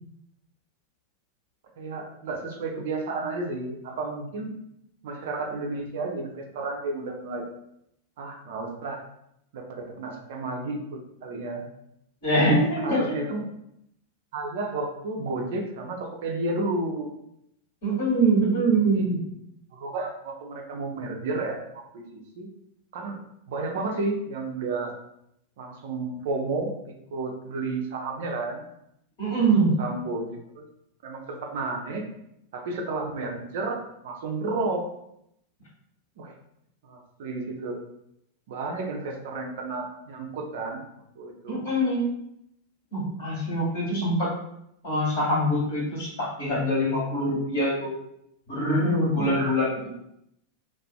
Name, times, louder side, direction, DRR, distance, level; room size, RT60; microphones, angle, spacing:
voice 1, 1.8-4.6 5.0-7.4 8.2-9.0 9.5-11.6 12.8-13.4 14.3-17.1 18.7-19.2 19.7-22.5 22.9-23.2 23.5-24.9 25.6-28.6 29.4-29.5 29.8-30.3 30.5-30.7 31.0-32.1 32.5-34.8 36.2-36.3 36.8-37.8 38.5-40.8 41.2-41.6 49.1-49.5, right 3 dB, 55° right, 2 dB, 0.4 m, -32 dB
voice 2, 12.2-13.2 17.8-19.2 29.2-29.7 41.5-42.1 42.9-44.3 44.8-47.9 48.5-49.8, right 1 dB, 55° left, -6 dB, 1.2 m, -24 dB
2.4 x 2.3 x 2.2 m, 0.77 s
figure-of-eight pair, 90°, 0 cm